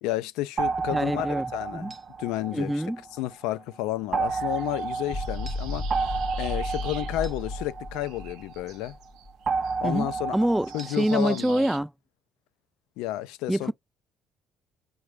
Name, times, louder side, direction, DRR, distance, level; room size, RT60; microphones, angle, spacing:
voice 1, 0.0-1.9 2.2-2.8 3.1-9.0 9.8-10.4 10.7-11.7 13.0-13.7, left 15 dB, 90° left, 0.3 m, -31 dB
sound 1, 0.6-3.3 4.1-8.7 9.5-11.2, right 4 dB, 40° right, 0.6 m, -31 dB
voice 2, 0.9-1.5 1.7-1.9 2.5-3.0 9.8-11.9 13.5-13.7, right 1 dB, 5° right, 0.3 m, -26 dB
sound 2, 4.3-7.7 7.9-11.8, right 10 dB, 85° right, 0.6 m, -47 dB
sound 3, 5.1-9.3, left 2 dB, 40° left, 0.7 m, -34 dB
4.9 x 2.1 x 3.1 m
supercardioid pair, 80°, 0 cm